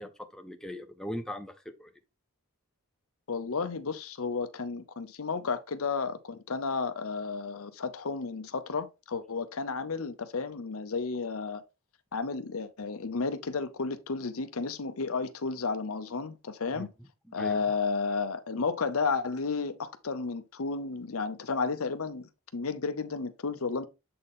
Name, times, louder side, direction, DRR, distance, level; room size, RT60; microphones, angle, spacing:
voice 1, 0.0-1.9 16.7-16.9 17.3-17.6, equal, ahead, 0.6 m, -40 dB
voice 2, 3.3-11.6 12.1-16.9 17.3-23.9, left 4 dB, 70° left, 0.7 m, -32 dB
7.6 x 4.2 x 3.6 m
head